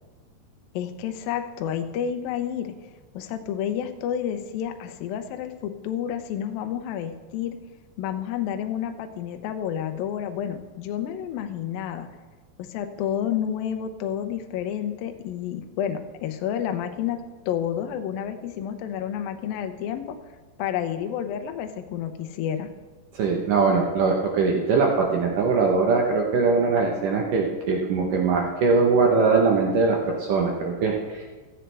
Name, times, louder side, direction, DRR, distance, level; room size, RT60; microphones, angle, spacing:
voice 1, 0.7-2.7 3.1-7.6 8.0-12.1 12.6-17.2 17.5-20.2 20.6-22.7, left 9 dB, 90° left, 6 dB, 2.0 m, -30 dB
voice 2, 23.1-31.3, right 4 dB, 80° right, 0 dB, 1.9 m, -21 dB
15.5 x 15.0 x 3.4 m, 1.3 s
omnidirectional pair, 5.4 m